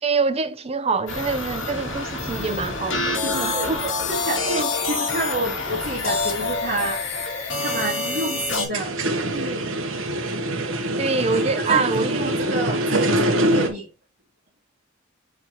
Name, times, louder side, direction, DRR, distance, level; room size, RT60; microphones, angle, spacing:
voice 1, 0.0-3.9 11.0-12.2, right 4 dB, 30° right, 0.8 m, -25 dB
sound 1, 1.1-8.7, left 3 dB, 75° left, 2.5 m, -27 dB
voice 2, 3.2-3.7 4.1-7.0 7.6-8.9 9.3-9.7 11.7-11.8 12.1-13.9, right 2 dB, 55° right, 2.2 m, -29 dB
sound 2, 8.6-13.7, right 1 dB, 85° right, 1.3 m, -24 dB
7.6 x 4.5 x 3.0 m
head